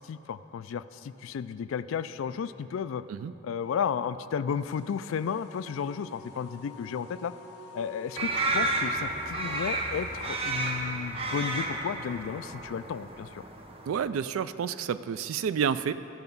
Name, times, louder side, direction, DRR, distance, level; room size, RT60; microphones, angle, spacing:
voice 1, 0.0-3.0 3.4-7.3 7.7-13.4, left 7 dB, 75° left, 13 dB, 0.3 m, -33 dB
sound 1, 4.6-10.8, left 1 dB, 55° left, 1.5 m, -50 dB
sound 2, 8.2-14.1, right 2 dB, 25° right, 0.7 m, -32 dB
voice 2, 13.8-15.9, right 7 dB, 85° right, 14 dB, 0.3 m, -29 dB
14.0 x 5.8 x 5.4 m, 3.0 s
head